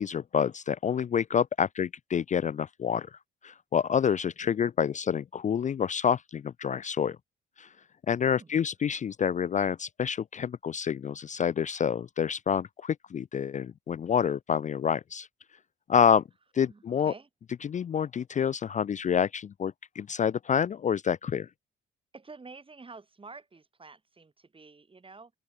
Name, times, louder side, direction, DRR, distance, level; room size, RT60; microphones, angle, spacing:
voice 1, 0.0-7.2 7.6-7.7 8.1-15.3 15.9-16.2 16.5-17.1 17.6-21.5, left 7 dB, 40° left, 0.5 m, -28 dB
voice 2, 8.2-8.5 16.6-17.3 22.1-25.3, right 4 dB, 25° right, 6.1 m, -49 dB
open air
cardioid pair, 90°, 20 cm